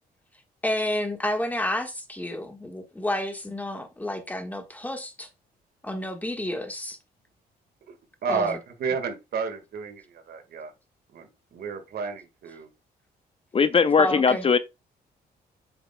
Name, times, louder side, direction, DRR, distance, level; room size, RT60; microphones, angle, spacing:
voice 1, 0.6-5.3 5.8-7.0 8.3-8.6 14.0-14.5, left 1 dB, 10° left, 1.4 m, -30 dB
voice 2, 8.2-10.7 11.1-12.7, right 5 dB, 70° right, 1.7 m, -31 dB
voice 3, 13.5-14.6, left 5 dB, 35° left, 0.5 m, -19 dB
7.9 x 5.9 x 2.2 m
cardioid pair, 100°, 17 cm